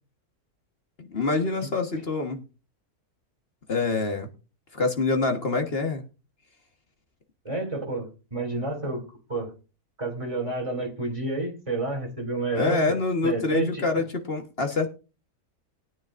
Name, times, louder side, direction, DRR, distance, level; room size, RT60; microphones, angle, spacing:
voice 1, 1.0-2.4 3.7-4.3 4.7-6.0 12.5-14.9, left 3 dB, 40° left, 5 dB, 1.6 m, -26 dB
voice 2, 7.4-9.5 10.0-13.0 13.2-14.0, right 2 dB, 20° right, 1 dB, 3.1 m, -30 dB
20.5 x 9.5 x 2.6 m, 0.32 s
omnidirectional pair, 1.6 m